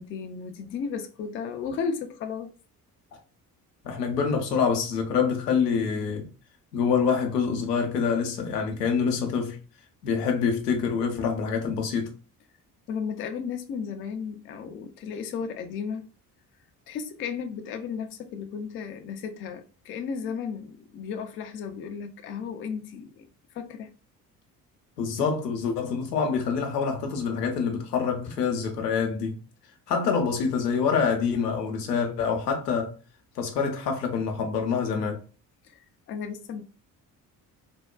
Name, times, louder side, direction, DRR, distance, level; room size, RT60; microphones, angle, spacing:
voice 1, 0.0-2.5 12.9-16.1 16.9-23.3 23.5-23.9 35.6-36.6, left 6 dB, 30° left, 0.4 m, -34 dB
voice 2, 3.8-6.3 6.7-9.6 10.0-12.1 25.0-29.4 29.9-32.9 33.4-35.2, left 6 dB, 80° left, 0.7 m, -26 dB
3.4 x 2.1 x 2.3 m
figure-of-eight pair, 50°, 47 cm